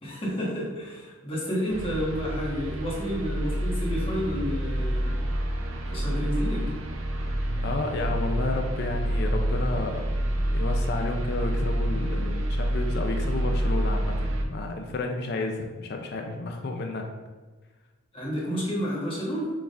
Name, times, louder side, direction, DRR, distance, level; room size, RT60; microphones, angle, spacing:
voice 1, 0.0-5.2 5.8-6.7 18.1-19.5, equal, 25° left, -6 dB, 1.3 m, -30 dB
sound 1, 1.7-14.4, right 1 dB, 80° right, 0.6 m, -28 dB
voice 2, 7.6-10.1 10.5-17.1, left 2 dB, 50° left, 3 dB, 0.4 m, -31 dB
6.1 x 3.5 x 2.5 m, 1.3 s
head